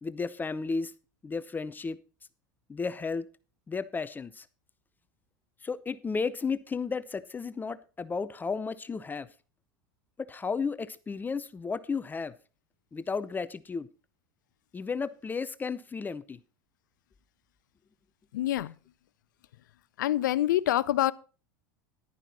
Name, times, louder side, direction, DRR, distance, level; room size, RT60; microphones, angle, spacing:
voice 1, 0.0-0.9 1.2-2.0 2.7-3.3 3.7-4.5 5.6-9.3 10.2-12.3 12.9-13.9 14.7-16.4, left 4 dB, 20° left, 0.6 m, -33 dB
voice 2, 18.3-18.7 20.0-21.1, left 14 dB, 70° left, 0.5 m, -26 dB
11.0 x 10.0 x 4.1 m
hypercardioid pair, 85°, 10 cm